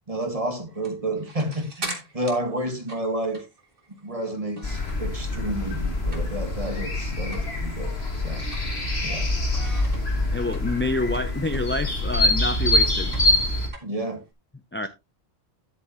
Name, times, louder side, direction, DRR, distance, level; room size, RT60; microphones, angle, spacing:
voice 1, 0.1-3.4 4.0-8.4 9.0-9.3 13.8-14.2, right 1 dB, 35° right, 1.8 m, -30 dB
sound 1, 0.7-5.2 5.5-6.6 6.9-7.0 7.3-7.5 7.9-9.1 9.5-14.3, right 2 dB, 60° right, 2.3 m, -41 dB
sound 2, 4.6-13.7, left 2 dB, 85° left, 2.7 m, -25 dB
voice 2, 10.3-13.2 14.7-14.9, left 2 dB, 15° left, 0.4 m, -27 dB
10.5 x 8.3 x 2.9 m
omnidirectional pair, 1.0 m